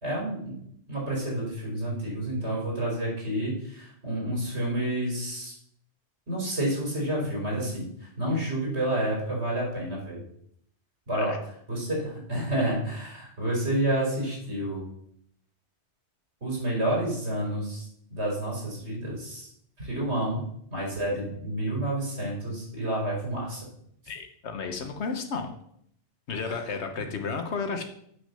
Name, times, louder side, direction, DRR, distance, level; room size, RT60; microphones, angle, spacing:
voice 1, 0.0-0.6 0.9-5.5 6.3-10.2 11.1-11.3 11.7-14.9 16.4-19.5 19.8-23.6 26.4-26.6, right 1 dB, 80° right, -3 dB, 4.6 m, -29 dB
voice 2, 24.1-25.5 26.3-27.8, left 4 dB, 80° left, 5 dB, 1.3 m, -32 dB
7.9 x 6.2 x 6.7 m, 0.69 s
omnidirectional pair, 1.1 m